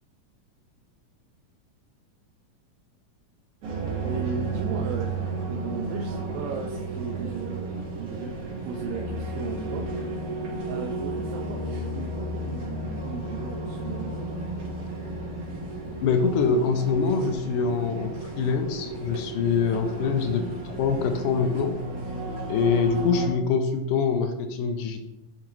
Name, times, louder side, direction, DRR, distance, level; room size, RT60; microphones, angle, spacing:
sound 1, 3.6-23.3, right 2 dB, 65° right, 3.3 m, -33 dB
voice 1, 4.0-7.7 8.0-9.9 10.7-14.2, right 5 dB, 80° right, 1 dB, 2.1 m, -36 dB
voice 2, 16.0-21.8 22.5-25.0, left 5 dB, 80° left, 6 dB, 2.1 m, -24 dB
9.9 x 3.8 x 3.0 m, 0.88 s
omnidirectional pair, 3.9 m